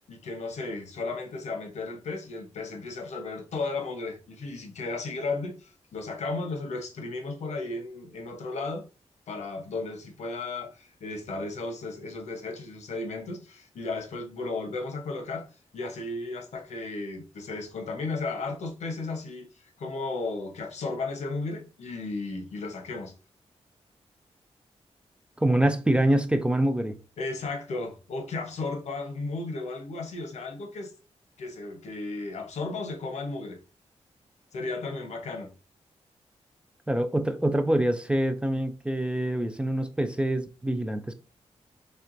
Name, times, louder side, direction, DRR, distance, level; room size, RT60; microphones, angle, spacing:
voice 1, 0.1-8.9 9.3-23.1 27.2-30.9 31.4-33.6 34.5-35.5, left 3 dB, 80° left, 0.9 m, -34 dB
voice 2, 25.4-27.0 36.9-41.1, right 1 dB, 10° right, 0.3 m, -25 dB
4.4 x 3.3 x 2.5 m
wide cardioid pair, 145°, 11 cm